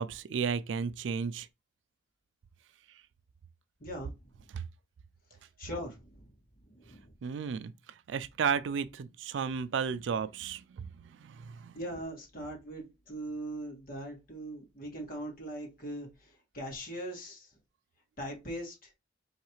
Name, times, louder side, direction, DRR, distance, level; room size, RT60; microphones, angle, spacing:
voice 1, 0.0-1.5 4.5-4.6 7.2-7.7 8.1-10.9 11.2-11.7, right 6 dB, 70° right, 0.4 m, -33 dB
voice 2, 3.8-4.2 5.6-6.3 6.6-7.1 11.7-17.6 18.2-18.9, right 1 dB, 50° left, 2.0 m, -41 dB
4.7 x 3.2 x 3.0 m
head